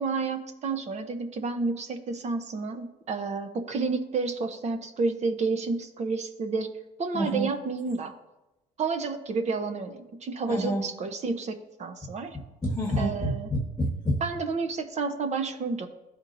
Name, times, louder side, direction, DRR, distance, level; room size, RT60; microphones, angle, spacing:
voice 1, 0.0-6.7 7.0-8.1 8.8-12.4 13.0-13.5 14.2-15.9, right 4 dB, 40° right, 8 dB, 0.7 m, -30 dB
voice 2, 7.1-7.5 10.5-10.8 12.6-14.2, equal, 15° left, -2 dB, 1.2 m, -28 dB
12.5 x 4.4 x 2.6 m, 1.0 s
cardioid pair, 110°, 17 cm